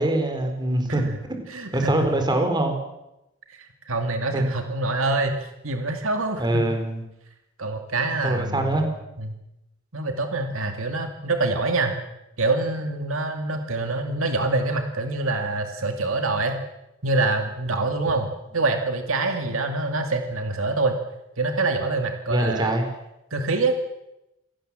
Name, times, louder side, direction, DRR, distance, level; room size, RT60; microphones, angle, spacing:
voice 1, 0.0-1.0 1.3-1.4 1.7-2.8 4.3-4.4 6.4-7.0 8.2-8.9 22.3-22.9, right 1 dB, 20° right, 5 dB, 4.2 m, -23 dB
voice 2, 1.5-2.1 3.5-6.6 7.6-8.9 9.2-9.4 9.9-12.0 12.4-16.6 17.0-18.3 18.5-21.0 21.4-22.7 23.3-23.8, right 2 dB, 70° right, 5 dB, 2.3 m, -25 dB
27.5 x 18.0 x 7.6 m, 0.92 s
head